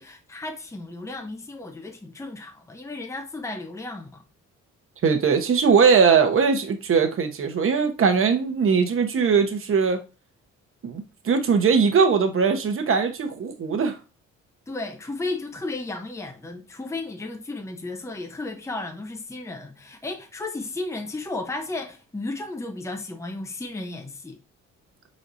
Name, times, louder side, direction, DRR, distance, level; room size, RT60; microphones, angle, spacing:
voice 1, 0.0-4.2 14.7-24.4, left 2 dB, 10° left, 0.8 m, -34 dB
voice 2, 5.0-10.0 10.8-14.0, right 5 dB, 45° right, 1.1 m, -20 dB
4.7 x 4.2 x 2.6 m
cardioid pair, 90°, 30 cm